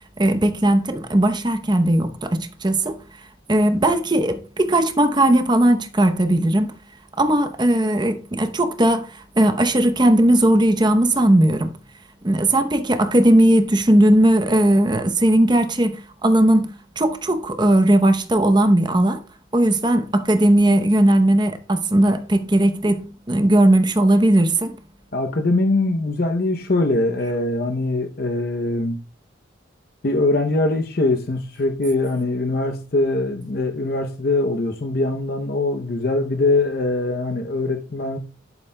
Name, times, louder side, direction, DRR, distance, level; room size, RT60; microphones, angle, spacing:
voice 1, 0.2-3.0 3.5-6.7 7.2-11.7 12.2-16.7 17.0-19.2 19.5-24.8, right 1 dB, 20° right, 0.8 m, -18 dB
voice 2, 25.1-29.0 30.0-38.2, left 2 dB, 50° left, 0.7 m, -22 dB
11.0 x 8.4 x 2.2 m
head